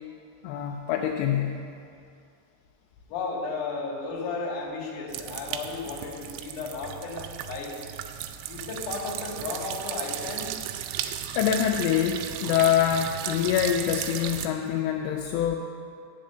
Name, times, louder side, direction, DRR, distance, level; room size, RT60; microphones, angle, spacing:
voice 1, 0.4-1.6 11.4-15.6, left 9 dB, 85° left, 2 dB, 2.7 m, -25 dB
voice 2, 3.1-7.7 8.5-10.5, left 4 dB, 55° left, -4 dB, 2.7 m, -34 dB
sound 1, 5.1-14.5, right 11 dB, 90° right, 2.9 m, -35 dB
8.7 x 6.4 x 7.6 m, 2.4 s
omnidirectional pair, 5.2 m